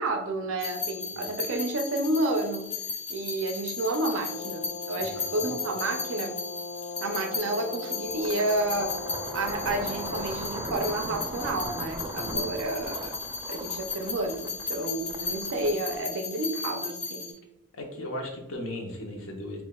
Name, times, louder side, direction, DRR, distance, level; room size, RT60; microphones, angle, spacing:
voice 1, 0.0-2.6 3.1-6.4 7.0-8.9 9.3-13.2 13.5-17.3, right 2 dB, 85° right, 5 dB, 0.5 m, -30 dB
sound 1, 0.6-17.3, left 4 dB, 30° left, 1.4 m, -36 dB
Brass instrument, 4.2-10.5, left 3 dB, 55° left, 0.5 m, -39 dB
voice 2, 5.0-5.6 12.2-12.6 17.7-19.6, left 1 dB, 85° left, 2 dB, 0.9 m, -38 dB
sound 2, 8.1-16.3, right 1 dB, 20° right, 0.4 m, -38 dB
7.0 x 2.5 x 2.2 m, 0.86 s
head